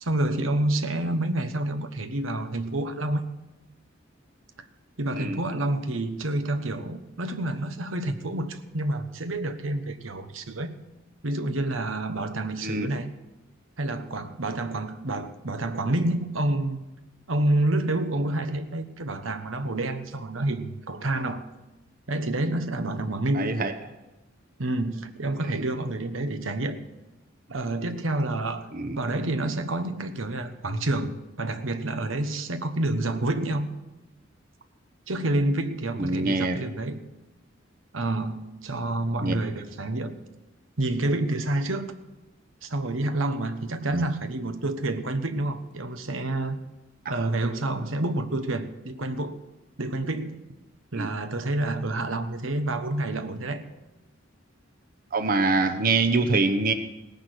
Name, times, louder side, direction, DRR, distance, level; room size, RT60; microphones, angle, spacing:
voice 1, 0.0-3.2 5.0-10.8 11.2-13.1 13.8-16.8 17.3-21.5 22.1-23.5 24.6-26.8 27.5-28.7 29.0-33.7 35.1-37.0 37.9-40.2 40.8-41.9 42.6-46.6 47.1-49.4 49.8-50.5 50.9-53.7, right 2 dB, 85° right, 9 dB, 1.2 m, -28 dB
voice 2, 23.3-23.7 25.5-25.6 28.7-29.0 36.0-36.5 39.2-39.4 43.9-44.0 47.0-47.2 51.0-51.1 55.1-56.7, right 3 dB, 45° right, 8 dB, 0.9 m, -24 dB
17.5 x 10.5 x 6.6 m, 1.0 s
head